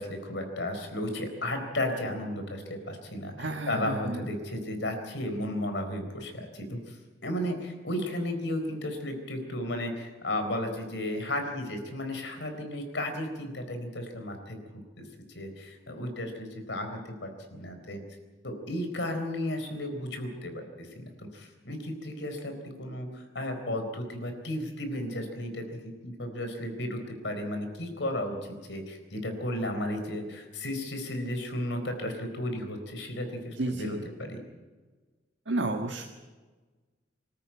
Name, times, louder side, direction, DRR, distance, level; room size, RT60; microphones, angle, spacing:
voice 1, 0.0-3.3 3.7-7.0 7.2-14.6 15.0-15.1 15.3-18.0 18.4-28.4 28.7-34.4, left 1 dB, 75° left, 6 dB, 4.1 m, -34 dB
voice 2, 3.4-4.3 33.6-34.1 35.4-36.0, right 2 dB, 85° right, 3 dB, 1.5 m, -32 dB
25.0 x 13.5 x 9.2 m, 1.3 s
head